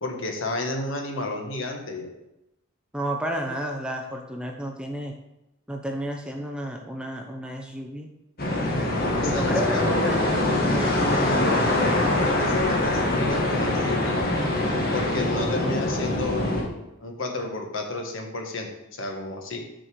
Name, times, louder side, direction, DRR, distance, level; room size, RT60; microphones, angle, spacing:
voice 1, 0.0-2.1 9.2-10.1 11.3-11.6 12.2-14.2 14.9-19.6, left 2 dB, 70° left, 3 dB, 1.5 m, -31 dB
voice 2, 2.9-5.1 5.7-8.1 9.2-11.6, right 1 dB, 5° right, 2 dB, 0.9 m, -32 dB
sound 1, 8.4-16.6, left 1 dB, 45° left, 1.9 m, -23 dB
6.9 x 6.5 x 6.2 m, 0.90 s
head